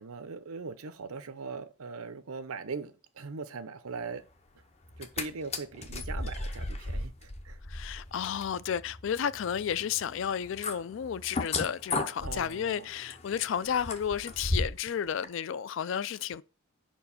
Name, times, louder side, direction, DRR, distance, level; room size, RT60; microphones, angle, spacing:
voice 1, 0.0-4.2 5.0-7.6 12.2-12.9, right 4 dB, 85° right, 0.7 m, -40 dB
sound 1, 4.8-5.2 5.5-14.9 15.2-15.3, left 2 dB, 30° left, 0.6 m, -36 dB
voice 2, 7.7-16.4, left 8 dB, 60° left, 0.3 m, -32 dB
5.1 x 4.5 x 5.5 m
head